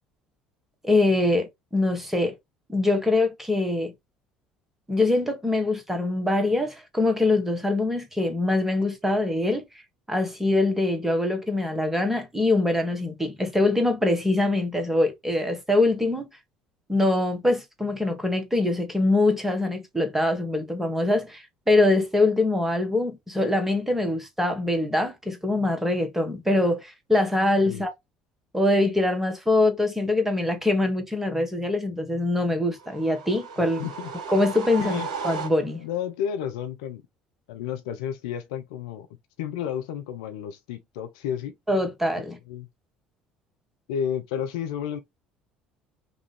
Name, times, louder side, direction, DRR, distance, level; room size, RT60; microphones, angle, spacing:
voice 1, 0.8-2.3 2.7-3.9 4.9-9.6 10.1-16.3 16.9-27.9 28.5-33.9 34.3-35.8 41.7-42.4, left 2 dB, 10° right, 1.5 m, -23 dB
sound 1, 32.8-36.0, right 5 dB, 70° right, 0.8 m, -35 dB
voice 2, 33.8-34.1 34.8-35.1 35.8-37.0 37.5-39.1 39.4-41.5 42.5-42.7 43.9-45.0, left 9 dB, 65° left, 0.6 m, -31 dB
5.3 x 2.6 x 3.4 m
figure-of-eight pair, 60°, 4 cm